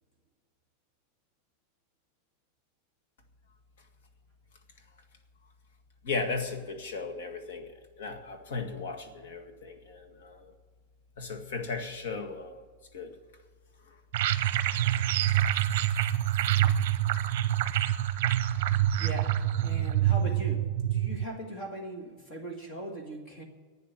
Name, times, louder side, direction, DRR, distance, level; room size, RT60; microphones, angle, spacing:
voice 1, 6.0-10.5 11.2-12.6 12.9-13.1, left 4 dB, 75° left, 7 dB, 1.9 m, -36 dB
sound 1, 14.1-21.2, right 12 dB, 55° right, 0.8 m, -26 dB
voice 2, 19.0-23.4, right 1 dB, 25° left, 3 dB, 1.8 m, -40 dB
11.5 x 9.1 x 9.3 m, 1.5 s
supercardioid pair, 180°, 0 cm